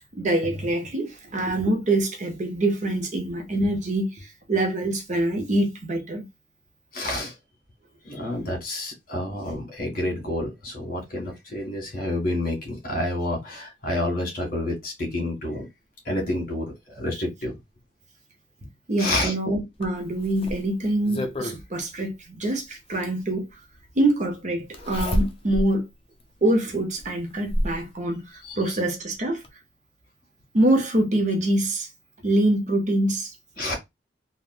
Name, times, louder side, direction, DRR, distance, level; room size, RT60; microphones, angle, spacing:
voice 1, 0.1-6.2 18.9-23.4 24.0-25.8 26.4-28.2 28.6-29.4 30.5-31.9 32.2-33.3, right 1 dB, 45° right, 0.8 m, -24 dB
voice 2, 6.9-7.3 8.0-15.7 16.0-17.6 19.0-19.3 28.4-28.6 33.6-33.7, left 1 dB, 55° left, 1.6 m, -29 dB
Zipper (clothing), 19.8-21.6 23.0-23.1 24.7-25.7 26.2-26.3 27.0-27.8 29.0-29.1 29.4-29.5, equal, 35° left, 0.6 m, -28 dB
3.4 x 2.3 x 2.4 m
head